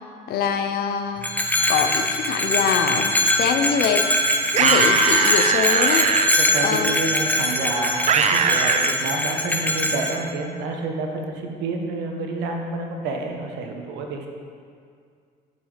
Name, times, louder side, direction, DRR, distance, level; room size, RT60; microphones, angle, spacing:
voice 1, 0.3-1.3 1.7-4.1 4.6-6.1 6.6-7.0, left 7 dB, 70° left, 7 dB, 0.8 m, -24 dB
Bell, 1.2-10.2, left 1 dB, 10° left, 1.0 m, -22 dB
sound 1, 4.5-6.3 8.1-8.9, right 7 dB, 40° right, 0.5 m, -20 dB
voice 2, 6.4-14.3, right 3 dB, 85° right, 2 dB, 1.3 m, -29 dB
11.0 x 6.2 x 5.1 m, 2.2 s
cardioid pair, 110°, 17 cm